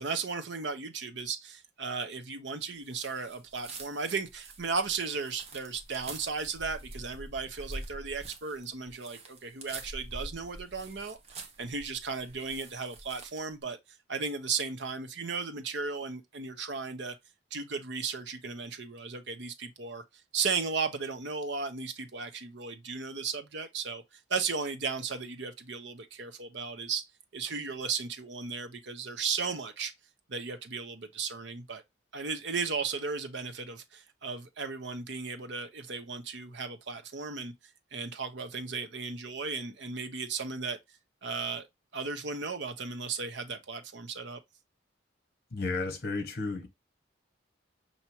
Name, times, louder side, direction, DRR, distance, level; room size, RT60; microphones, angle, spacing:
voice 1, 0.0-13.8 14.1-17.1 17.5-20.0 20.3-27.0 27.3-29.9 30.3-31.8 32.1-37.5 37.9-40.8 41.2-41.7 41.9-44.4, right 5 dB, 65° right, 0.8 m, -35 dB
sound 1, 2.9-13.5, right 2 dB, 35° right, 0.9 m, -46 dB
voice 2, 45.5-46.7, left 3 dB, 55° left, 1.0 m, -33 dB
5.7 x 2.8 x 2.8 m
head